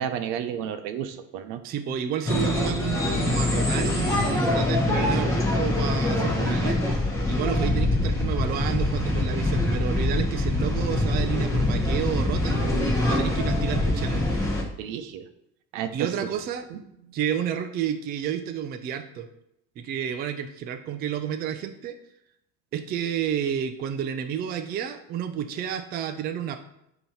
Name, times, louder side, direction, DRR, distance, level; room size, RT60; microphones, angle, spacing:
voice 1, 0.0-1.6 14.8-15.3 15.7-16.3 16.7-17.1, right 9 dB, 75° right, 9 dB, 0.8 m, -32 dB
voice 2, 1.6-6.8 7.3-12.6 13.0-14.3 15.9-16.7 17.1-19.3 19.8-22.0 22.7-26.6, right 9 dB, 30° right, 7 dB, 0.4 m, -30 dB
sound 1, 2.3-14.6, left 1 dB, 10° left, 1.1 m, -24 dB
8.7 x 3.0 x 5.5 m, 0.80 s
cardioid pair, 170°, 33 cm